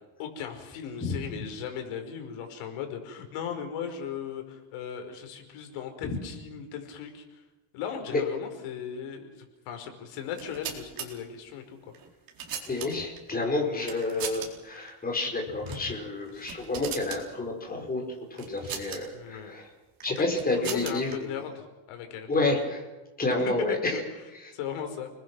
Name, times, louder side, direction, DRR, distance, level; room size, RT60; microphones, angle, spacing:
voice 1, 0.2-7.4 7.7-11.8 12.6-12.7 16.3-16.5 19.1-19.5 20.1-20.2 20.5-22.3 23.9-24.0 24.5-25.1, left 8 dB, 85° left, 6 dB, 4.8 m, -37 dB
sound 1, 10.3-11.1 11.9-13.2 13.8-14.5 14.8-14.9 15.6-15.9 16.2-17.2 18.4-19.0 20.0-21.1, right 8 dB, 45° right, 4.1 m, -38 dB
voice 2, 12.7-18.0 18.3-19.7 20.0-21.3 22.3-22.8 23.2-24.0, left 2 dB, 20° left, 2 dB, 4.9 m, -29 dB
29.5 x 20.5 x 6.1 m, 1.1 s
cardioid pair, 160°, 49 cm